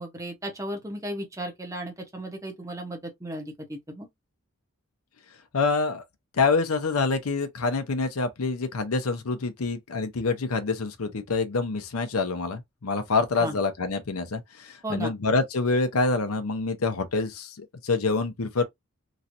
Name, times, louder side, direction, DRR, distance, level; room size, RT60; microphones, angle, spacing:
voice 1, 0.0-4.1 13.4-13.5 14.8-15.1, right 1 dB, 15° right, 0.9 m, -35 dB
voice 2, 5.5-6.0 6.4-18.6, left 4 dB, 80° left, 0.7 m, -26 dB
3.1 x 2.7 x 2.6 m
head